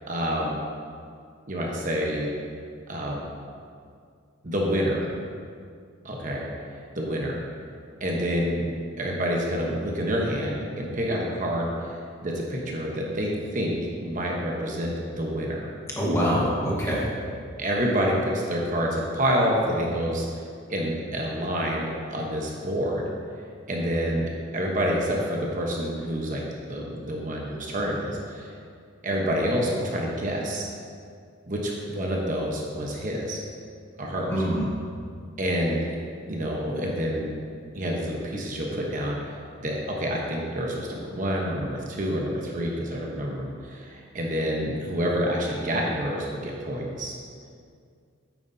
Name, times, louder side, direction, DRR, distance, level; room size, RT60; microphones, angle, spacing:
voice 1, 0.1-0.6 1.5-2.3 2.9-3.3 4.4-5.1 6.0-6.5 6.7-7.4 8.0-8.6 9.0-15.7 16.9-17.0 17.6-20.3 20.7-23.0 23.7-28.5 29.0-30.7 31.5-33.4 34.0-34.4 35.4-35.8 36.3-37.3 37.7-47.2, equal, 40° right, -2 dB, 1.0 m, -28 dB
voice 2, 16.0-17.1 34.3-34.6, equal, 15° left, -4 dB, 1.3 m, -24 dB
9.3 x 9.3 x 2.7 m, 2.2 s
head